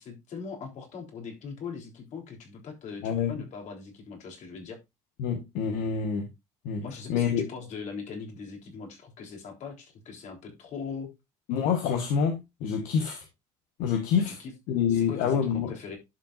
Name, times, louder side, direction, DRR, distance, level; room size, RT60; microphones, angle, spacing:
voice 1, 0.0-4.8 6.8-11.1 14.3-14.5 14.9-16.0, left 5 dB, 60° left, 3.6 m, -40 dB
voice 2, 5.2-6.3 6.6-6.8 7.1-7.5 11.5-13.2 13.8-14.4 14.7-15.7, left 7 dB, 80° left, 1.4 m, -27 dB
11.0 x 6.2 x 2.5 m
supercardioid pair, 95°, 14 cm